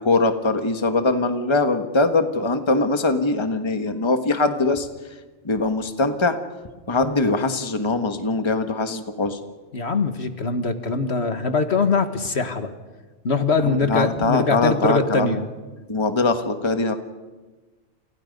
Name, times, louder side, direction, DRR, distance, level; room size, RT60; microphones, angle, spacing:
voice 1, 0.0-4.9 5.4-6.4 6.9-9.4 13.6-15.4 15.9-16.9, left 3 dB, 20° left, 7 dB, 1.5 m, -22 dB
voice 2, 9.7-12.7 13.2-15.4, left 4 dB, 55° left, 8 dB, 1.9 m, -22 dB
29.0 x 29.0 x 5.4 m, 1.3 s
omnidirectional pair, 1.3 m